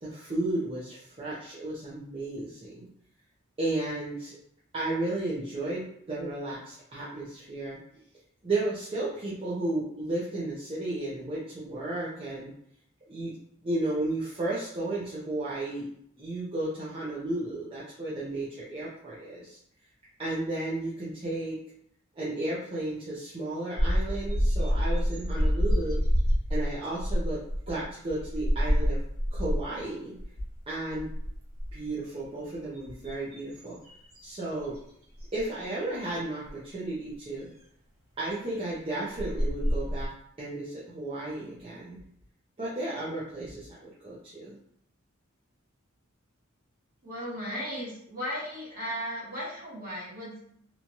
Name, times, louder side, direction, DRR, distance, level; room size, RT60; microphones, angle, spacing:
voice 1, 0.0-2.9 3.6-4.4 4.7-7.8 8.4-12.5 13.1-13.3 13.6-15.9 16.2-19.6 20.2-21.6 22.2-26.0 26.5-27.4 27.7-29.0 29.3-30.2 30.7-31.1 31.7-33.8 34.2-34.7 35.3-37.5 38.2-40.1 40.4-42.0 42.6-44.6, right 2 dB, 25° right, -8 dB, 0.6 m, -33 dB
sound 1, 23.8-29.8 30.2-30.6 30.9-31.9 32.5-34.8 35.2-35.4 36.5-36.6 38.7-38.8 39.2-40.1, equal, 80° right, 1.1 m, -27 dB
voice 2, 47.0-50.5, equal, 45° right, -6 dB, 1.3 m, -36 dB
3.0 x 2.3 x 2.6 m, 0.69 s
head